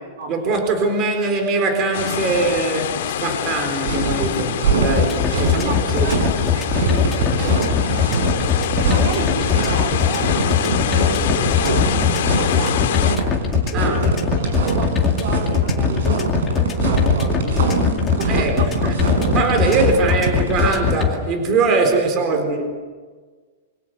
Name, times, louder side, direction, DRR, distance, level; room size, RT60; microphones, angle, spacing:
voice 1, 0.3-6.1 7.4-7.5 13.7-14.2 18.3-19.0 19.3-22.8, right 3 dB, 25° right, 5 dB, 4.1 m, -22 dB
sound 1, 1.9-13.2, left 11 dB, 60° left, 1.8 m, -26 dB
sound 2, 3.8-20.9, right 3 dB, 70° right, 7.3 m, -23 dB
sound 3, 5.0-21.1, left 8 dB, 15° left, 2.3 m, -20 dB
voice 2, 5.3-8.2 8.6-13.2 13.7-17.8 18.4-18.7 21.9-22.0 22.3-22.4, right 4 dB, 45° right, 1 dB, 3.5 m, -32 dB
27.0 x 24.5 x 6.8 m, 1.4 s
supercardioid pair, 175°, 0 cm